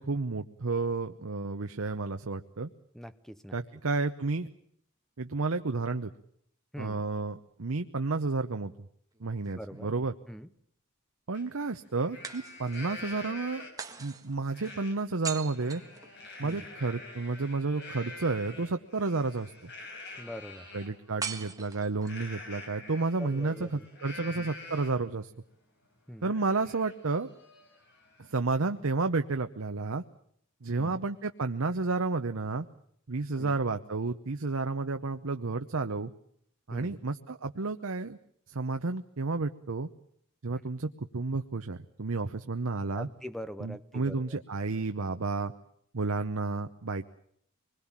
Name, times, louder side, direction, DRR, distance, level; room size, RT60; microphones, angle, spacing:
voice 1, 0.0-2.7 3.5-4.5 5.2-6.1 6.8-8.7 9.2-10.1 11.3-13.7 14.0-15.8 16.4-19.7 20.7-25.3 26.2-27.3 28.2-30.0 30.6-32.7 33.1-36.1 36.7-38.2 38.5-39.9 40.4-43.1 43.6-45.5 45.9-47.0, right 3 dB, 70° right, 7 dB, 0.9 m, -31 dB
voice 2, 2.9-3.6 6.7-7.0 9.5-9.9 10.3-10.5 16.4-16.6 20.2-20.7 23.2-23.8 24.3-24.5 26.1-26.3 30.8-31.0 33.4-33.6 36.7-37.0 43.0-44.4, equal, ahead, 12 dB, 0.9 m, -43 dB
sound 1, 9.1-10.2 12.2-13.0 13.8-16.6 21.2-22.3, right 5 dB, 15° right, 1.8 m, -42 dB
Livestock farm animals working animals, 11.3-11.4 11.9-13.9 14.5-14.9 15.3-20.9 22.0-25.1 25.5-25.6 26.0-28.3, left 2 dB, 55° left, 5.7 m, -46 dB
24.5 x 21.0 x 7.4 m, 0.69 s
head